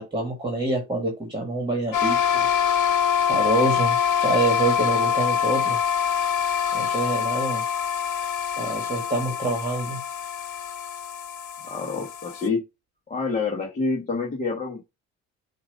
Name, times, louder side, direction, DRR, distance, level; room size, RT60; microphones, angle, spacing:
voice 1, 0.0-2.5 3.3-5.8 6.7-7.6 8.6-10.0, right 2 dB, 15° right, 1 dB, 1.7 m, -26 dB
sound 1, 1.9-12.5, left 8 dB, 65° left, 1.0 m, -25 dB
voice 2, 11.6-12.6 13.1-14.8, left 4 dB, 20° left, -2 dB, 1.3 m, -27 dB
7.1 x 2.6 x 5.1 m, 0.24 s
cardioid pair, 150°, 32 cm